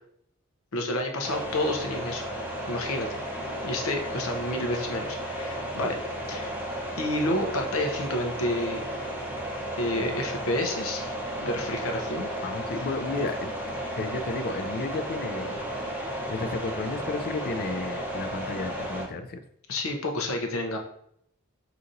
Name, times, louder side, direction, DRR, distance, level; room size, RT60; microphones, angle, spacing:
voice 1, 0.7-2.3 2.7-3.2 3.6-5.9 6.3-6.5 7.0-8.9 9.8-11.1 11.4-12.3 19.7-20.8, left 1 dB, 85° left, 3 dB, 0.7 m, -29 dB
sound 1, 1.2-19.1, right 1 dB, 10° right, 0.6 m, -33 dB
voice 2, 12.4-13.5 14.0-15.6 16.3-19.4, left 3 dB, 45° left, 8 dB, 0.4 m, -32 dB
5.0 x 2.9 x 2.5 m, 0.70 s
head